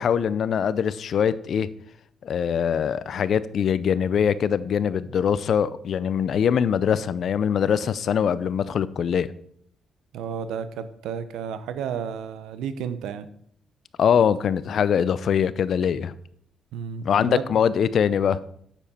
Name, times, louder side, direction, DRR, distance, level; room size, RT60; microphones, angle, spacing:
voice 1, 0.0-1.7 2.2-9.3 14.0-16.1 17.0-18.4, left 8 dB, 60° left, 0.5 m, -23 dB
voice 2, 10.1-13.3 16.7-17.5, right 7 dB, 85° right, 0.8 m, -32 dB
9.0 x 7.2 x 4.3 m
cardioid pair, 90°, 0 cm